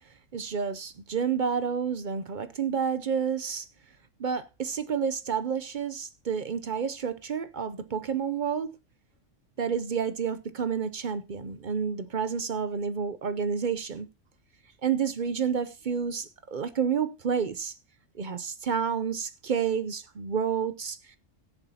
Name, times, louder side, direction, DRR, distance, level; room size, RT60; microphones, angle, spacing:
voice 1, 0.3-3.6 4.2-8.7 9.6-14.1 14.8-17.7 18.2-21.0, right 6 dB, 50° right, 0.7 m, -29 dB
20.0 x 7.0 x 2.8 m
omnidirectional pair, 1.3 m